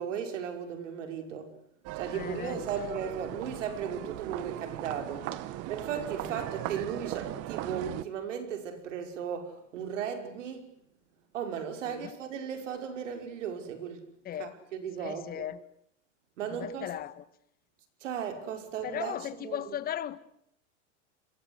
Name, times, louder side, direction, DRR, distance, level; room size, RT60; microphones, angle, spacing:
voice 1, 0.0-1.5 2.0-5.4 5.7-10.7 11.3-14.0 14.4-15.5 16.4-16.9 18.0-19.7, right 7 dB, 85° right, 5.8 m, -36 dB
sound 1, 1.8-8.0, right 14 dB, 40° right, 1.7 m, -38 dB
voice 2, 2.1-2.7 6.2-6.4 11.8-12.1 14.2-14.5 15.0-15.6 16.5-17.2 18.8-20.2, left 10 dB, 25° left, 1.6 m, -37 dB
29.0 x 23.0 x 8.2 m
supercardioid pair, 145°, 36 cm